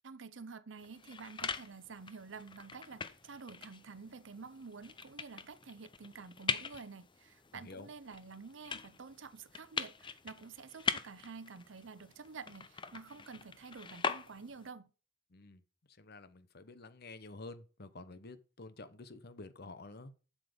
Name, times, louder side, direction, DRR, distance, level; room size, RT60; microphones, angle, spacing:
voice 1, 0.0-14.9, right 4 dB, 70° right, 0.7 m, -49 dB
sound 1, 0.8-14.7, left 5 dB, 25° left, 0.6 m, -42 dB
voice 2, 7.5-7.9 15.3-15.6 15.9-20.1, left 2 dB, 55° left, 0.9 m, -50 dB
7.7 x 7.6 x 5.1 m
head